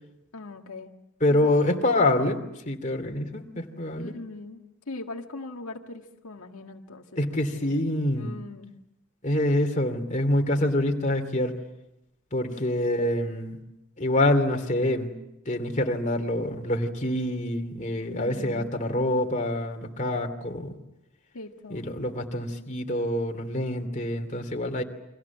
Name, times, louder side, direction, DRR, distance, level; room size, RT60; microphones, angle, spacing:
voice 1, 0.3-0.9 1.3-1.5 4.0-7.1 7.5-7.9 8.1-8.7 18.0-18.7 21.3-21.9, left 2 dB, 85° left, 3 dB, 1.8 m, -41 dB
voice 2, 1.2-2.4 2.7-4.1 7.2-8.3 9.2-11.6 12.3-13.6 14.0-15.1 15.5-20.7 21.7-24.8, left 1 dB, 35° left, 4 dB, 2.8 m, -26 dB
30.0 x 24.5 x 7.2 m, 0.87 s
head